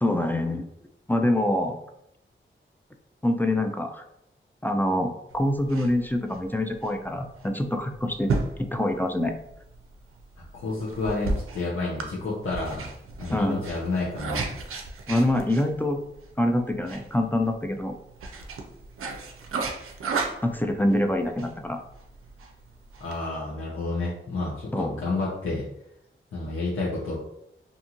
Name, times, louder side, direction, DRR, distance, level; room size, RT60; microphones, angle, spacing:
voice 1, 0.0-0.7 1.1-1.8 3.2-4.0 4.6-8.3 8.6-9.3 13.3-13.6 15.1-16.0 16.4-17.9 20.4-21.8 24.7-24.9, left 1 dB, 10° left, 4 dB, 0.3 m, -25 dB
sound 1, 5.3-23.2, right 3 dB, 85° right, 0.4 m, -35 dB
voice 2, 10.5-12.9 13.2-14.5 23.0-25.6 26.3-27.2, left 3 dB, 75° left, -7 dB, 0.7 m, -30 dB
2.6 x 2.4 x 2.8 m, 0.80 s
cardioid pair, 60°, 21 cm